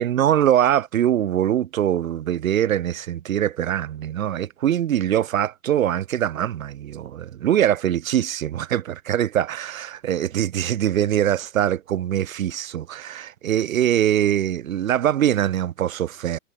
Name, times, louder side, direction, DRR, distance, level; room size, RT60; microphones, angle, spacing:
voice 1, 0.0-16.4, right 11 dB, 60° right, 7.4 m, -23 dB
figure-of-eight pair, 100°, 46 cm